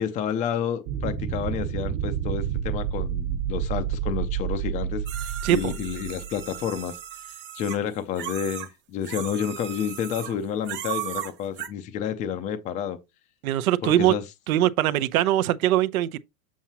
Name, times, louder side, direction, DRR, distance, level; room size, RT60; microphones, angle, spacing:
voice 1, 0.0-7.0 7.3-13.0 13.8-14.2, left 8 dB, 20° left, 0.4 m, -30 dB
sound 1, 0.9-6.6, right 9 dB, 55° right, 1.4 m, -29 dB
sound 2, 5.1-8.7 9.0-10.4 10.6-11.7, right 11 dB, 25° right, 0.9 m, -36 dB
voice 2, 13.4-14.1 14.5-16.2, right 13 dB, 90° right, 0.8 m, -22 dB
7.3 x 7.0 x 2.9 m
supercardioid pair, 150°, 41 cm